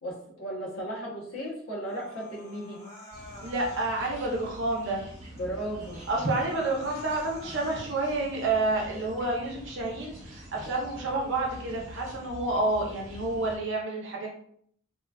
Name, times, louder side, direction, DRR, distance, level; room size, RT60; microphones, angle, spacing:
voice 1, 0.0-2.8 5.4-6.0, right 1 dB, 75° left, -4 dB, 1.0 m, -35 dB
Human voice, 1.8-3.9 4.3-4.9 5.4-5.5 5.8-7.9 8.3-8.9, left 1 dB, 25° left, 1.2 m, -49 dB
sound 1, 3.1-13.6, equal, 30° right, 1.1 m, -46 dB
voice 2, 3.4-5.1 6.1-14.3, right 2 dB, 60° right, -1 dB, 0.7 m, -29 dB
3.0 x 2.3 x 2.3 m, 0.64 s
head